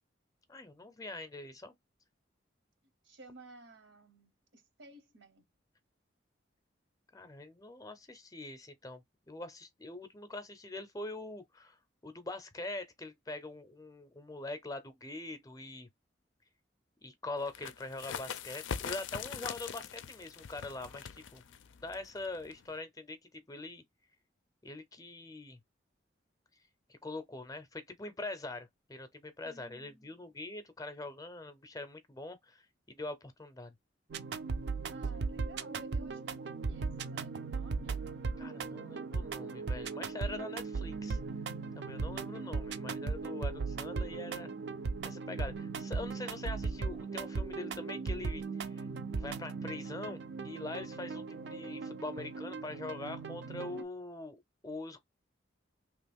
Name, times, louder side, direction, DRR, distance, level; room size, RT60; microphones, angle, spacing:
voice 1, 0.5-1.7 7.1-11.8 12.0-15.9 17.0-21.4 21.8-23.8 24.6-25.6 26.9-33.7 38.4-41.2 41.7-44.5 45.0-48.9 49.2-55.0, left 2 dB, 20° left, 0.5 m, -43 dB
voice 2, 3.0-5.4 29.4-30.3 34.9-38.0 43.4-43.7, right 2 dB, 85° right, 1.0 m, -55 dB
sound 1, 17.4-22.8, left 7 dB, 90° left, 0.4 m, -42 dB
sound 2, 34.1-53.8, right 4 dB, 65° right, 0.4 m, -38 dB
2.9 x 2.4 x 3.5 m
head